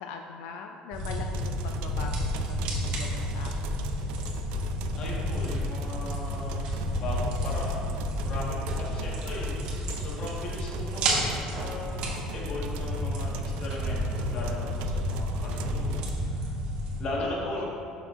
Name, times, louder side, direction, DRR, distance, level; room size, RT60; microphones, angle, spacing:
voice 1, 0.0-3.8 17.4-17.6, left 6 dB, 85° left, 4 dB, 0.4 m, -41 dB
sound 1, 0.9-17.0, equal, 55° right, 1.4 m, -31 dB
sound 2, 1.3-16.1, right 8 dB, 80° right, 0.4 m, -43 dB
voice 2, 5.0-6.6 7.0-8.0 8.2-9.5 10.0-16.5 17.0-17.6, left 2 dB, 40° left, -4 dB, 1.5 m, -37 dB
11.0 x 6.3 x 2.5 m, 2.5 s
cardioid pair, 180°, 2 cm